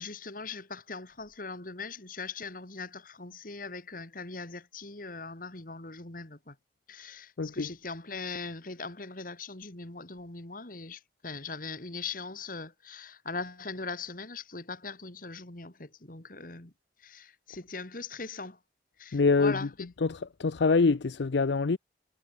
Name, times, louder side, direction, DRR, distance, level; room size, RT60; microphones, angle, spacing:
voice 1, 0.0-6.6 6.9-16.7 17.0-18.6 19.0-19.9, left 4 dB, 50° left, 2.2 m, -40 dB
voice 2, 7.4-7.7 19.1-19.6 20.0-21.8, left 4 dB, 75° left, 0.6 m, -25 dB
head